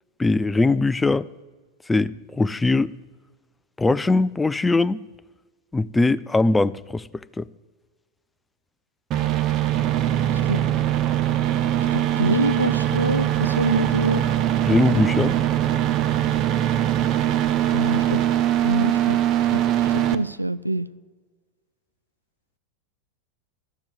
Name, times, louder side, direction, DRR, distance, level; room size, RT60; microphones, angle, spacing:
voice 1, 0.2-1.3 1.9-2.9 3.8-5.0 5.7-7.1 7.4-7.5 14.7-15.4, left 3 dB, 10° left, 0.4 m, -20 dB
sound 1, 9.1-20.1, right 11 dB, 35° right, 0.7 m, -22 dB
voice 2, 11.9-14.2 17.7-18.2 18.6-19.2 19.5-20.9, right 1 dB, 90° right, 0.4 m, -26 dB
13.5 x 7.1 x 8.4 m
figure-of-eight pair, 90°, 0 cm